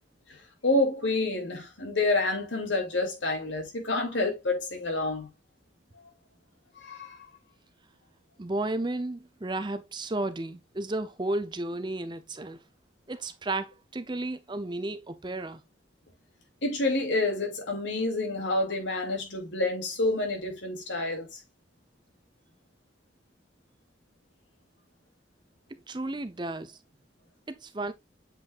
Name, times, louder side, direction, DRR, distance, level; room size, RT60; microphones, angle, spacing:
voice 1, 0.3-5.3 5.9-6.1 6.8-7.3 16.6-21.4, left 2 dB, 85° left, 2.7 m, -28 dB
voice 2, 8.4-12.6 13.1-15.6 25.9-26.8 27.5-27.9, right 2 dB, 25° right, 0.6 m, -33 dB
7.8 x 5.2 x 2.5 m
head